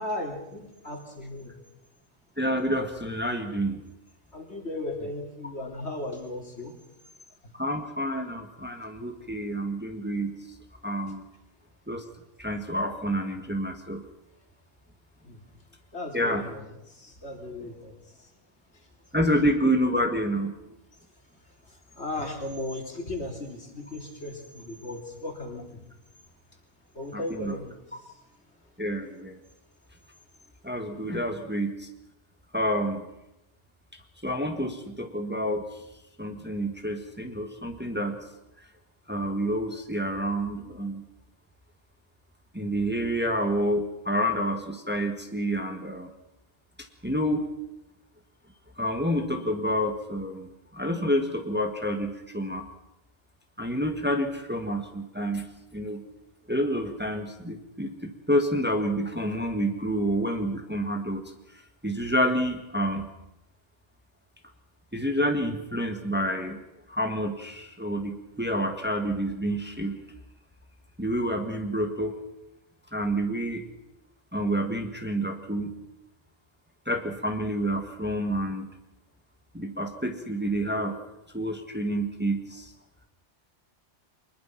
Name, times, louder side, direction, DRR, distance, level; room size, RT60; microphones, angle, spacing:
voice 1, 0.0-1.6 4.3-6.8 15.2-15.4 15.9-18.3 22.0-25.8 26.9-27.8, left 2 dB, 65° left, 2 dB, 3.4 m, -36 dB
voice 2, 2.4-3.8 7.6-10.3 10.8-11.2 11.9-12.0 12.4-14.0 16.1-16.4 19.1-20.5 27.1-27.6 28.8-29.4 30.6-31.9 32.5-33.0 34.2-35.6 36.2-38.2 39.1-41.0 42.5-46.1 47.0-47.5 48.8-52.7 53.6-55.4 55.7-56.0 56.5-61.2 61.8-63.1 64.9-66.6 66.9-70.0 71.0-72.1 72.9-73.6 74.3-75.7 76.9-78.7 79.5-81.0 81.3-82.7, equal, 10° right, 4 dB, 1.7 m, -28 dB
23.5 x 20.5 x 5.9 m, 0.92 s
omnidirectional pair, 1.2 m